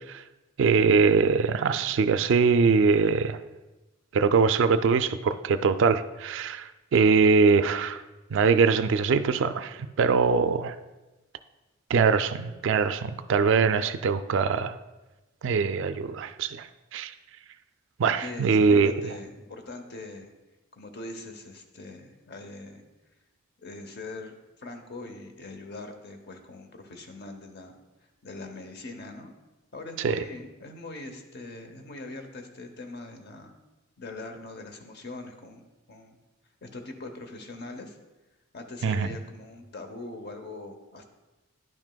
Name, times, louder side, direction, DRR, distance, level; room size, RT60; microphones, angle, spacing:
voice 1, 0.6-3.4 4.1-8.0 8.3-10.8 11.9-14.7 15.4-16.7 16.9-17.1 18.0-18.9 30.0-30.2 38.8-39.1, right 5 dB, 60° right, 11 dB, 0.3 m, -22 dB
voice 2, 18.2-20.3 20.7-22.8 23.6-24.3 24.6-27.8 28.2-29.3 29.7-33.5 34.0-35.6 35.9-36.2 36.6-38.0 38.5-41.0, left 2 dB, 50° left, 5 dB, 0.8 m, -42 dB
10.5 x 6.1 x 2.2 m, 1.1 s
head